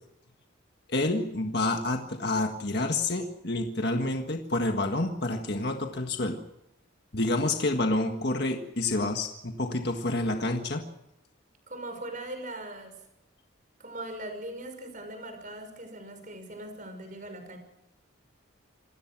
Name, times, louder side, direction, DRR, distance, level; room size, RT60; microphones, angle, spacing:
voice 1, 0.9-6.4 7.1-10.9, left 2 dB, 50° left, 4 dB, 1.7 m, -28 dB
voice 2, 11.7-13.0 13.8-17.6, right 1 dB, 40° right, 7 dB, 6.0 m, -40 dB
28.0 x 19.5 x 6.2 m, 0.85 s
head